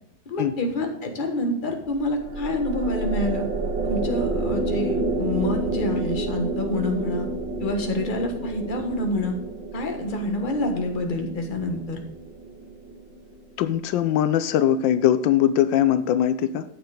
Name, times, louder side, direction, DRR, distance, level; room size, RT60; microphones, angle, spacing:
voice 1, 0.2-3.4 3.8-7.3 7.6-9.4 9.7-12.0, left 1 dB, 30° left, 3 dB, 1.4 m, -27 dB
sound 1, 1.9-13.3, right 2 dB, 80° right, 2.0 m, -30 dB
voice 2, 13.6-16.6, left 10 dB, 85° left, 12 dB, 1.3 m, -21 dB
9.4 x 6.9 x 4.9 m, 0.80 s
omnidirectional pair, 2.0 m